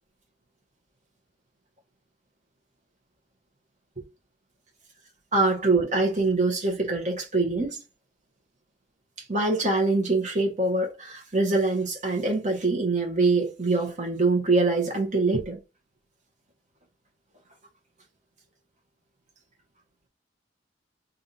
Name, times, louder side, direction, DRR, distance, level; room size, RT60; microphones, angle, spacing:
voice 1, 5.3-7.8 9.3-15.6, right 3 dB, 45° right, 1.3 m, -24 dB
3.5 x 2.7 x 4.0 m
head